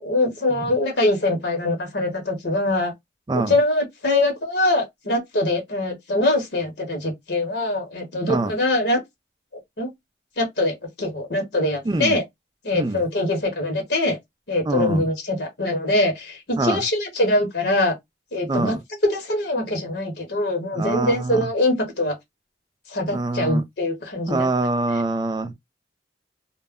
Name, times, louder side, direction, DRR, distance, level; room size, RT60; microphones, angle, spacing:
voice 1, 0.0-2.9 3.3-9.0 9.8-9.9 10.4-12.2 12.6-14.2 14.5-17.9 18.3-22.1 22.9-24.5, left 1 dB, 60° left, 1.0 m, -23 dB
voice 2, 11.9-12.2 12.7-13.0 14.6-15.0 16.6-16.8 18.5-18.8 20.7-21.5 23.1-23.6 24.3-25.5, right 2 dB, 20° right, 0.3 m, -24 dB
2.2 x 2.1 x 3.5 m
head